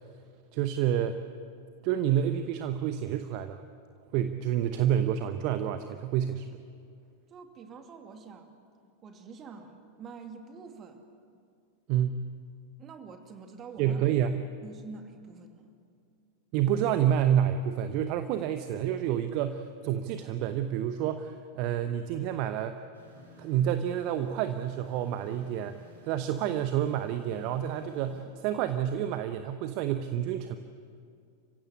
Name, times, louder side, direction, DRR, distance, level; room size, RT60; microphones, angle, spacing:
voice 1, 0.5-1.2 1.8-3.6 4.1-6.6 11.9-12.2 13.8-14.4 16.5-22.9 23.4-25.8 26.0-30.6, right 10 dB, 45° right, 9 dB, 0.9 m, -29 dB
voice 2, 7.3-8.6 9.0-11.1 12.8-14.0 14.6-15.7, right 4 dB, 30° right, 5 dB, 2.4 m, -46 dB
sound 1, 22.9-28.2, equal, 70° right, 6.3 m, -53 dB
29.0 x 16.0 x 8.5 m, 2.4 s
figure-of-eight pair, 90°, 0 cm